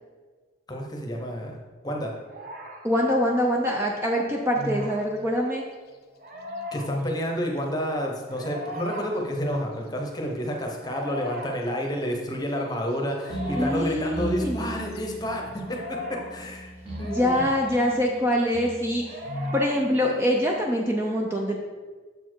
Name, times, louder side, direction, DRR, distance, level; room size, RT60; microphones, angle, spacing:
voice 1, 0.7-2.1 6.7-16.7 17.0-17.5, equal, 20° left, 1 dB, 0.9 m, -30 dB
sound 1, 2.3-2.9 4.5-5.0 6.2-6.9 8.2-9.0 10.7-11.5 13.1-13.8 15.6-16.3 16.9-17.6 19.0-19.7, left 1 dB, 45° right, 0.8 m, -37 dB
voice 2, 2.8-5.6 13.6-14.6 17.0-19.2 19.5-21.6, equal, 15° right, -1 dB, 0.5 m, -24 dB
sound 2, 4.5-5.1 5.7-5.8 6.3-7.3 8.8-9.8 13.3-13.8 14.9-15.8 16.9-17.8 18.8-19.8, left 1 dB, 55° left, 0.5 m, -37 dB
sound 3, 13.3-20.8, right 1 dB, 30° right, 1.2 m, -37 dB
6.8 x 4.3 x 4.6 m, 1.4 s
head